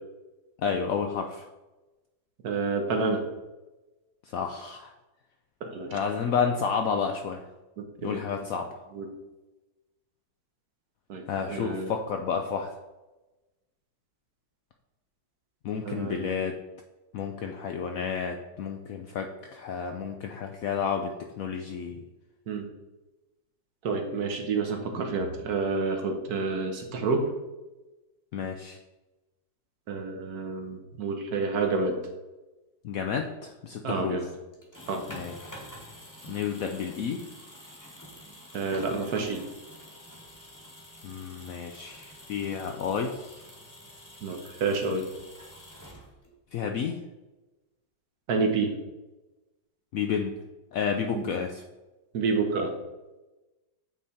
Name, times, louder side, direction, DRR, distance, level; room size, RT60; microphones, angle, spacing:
voice 1, 0.6-1.5 4.3-4.9 5.9-7.5 8.0-8.8 11.3-12.7 15.6-16.6 17.1-22.0 28.3-28.8 32.8-34.2 35.1-35.3 36.3-37.2 41.0-43.4 46.5-47.0 49.9-50.4 50.7-51.6, left 6 dB, 70° left, 4 dB, 0.8 m, -31 dB
voice 2, 2.4-3.2 5.6-6.0 7.8-8.2 8.9-9.1 11.1-11.2 11.5-11.9 15.8-16.4 22.5-22.7 23.8-27.2 29.9-32.0 33.8-34.3 34.9-35.0 38.5-39.4 44.2-45.0 48.3-48.7 51.1-51.3 52.1-52.7, right 4 dB, 65° right, 4 dB, 1.3 m, -29 dB
sound 1, 34.5-46.4, equal, 10° left, 1.1 m, -48 dB
8.5 x 3.5 x 4.1 m, 1.1 s
omnidirectional pair, 1.9 m